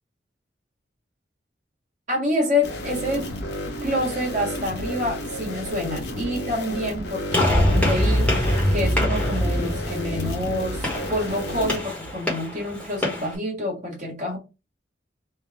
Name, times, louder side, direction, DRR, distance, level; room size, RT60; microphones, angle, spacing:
voice 1, 2.1-3.3 3.8-8.3 8.7-14.4, left 1 dB, 40° right, -2 dB, 1.6 m, -27 dB
sound 1, 2.6-11.8, left 1 dB, 65° left, 1.0 m, -32 dB
sound 2, 7.3-12.1, equal, 25° left, 0.5 m, -23 dB
Gunshot gunfire, 7.3-13.4, left 2 dB, 5° left, 1.1 m, -29 dB
3.5 x 2.3 x 4.0 m, 0.27 s
head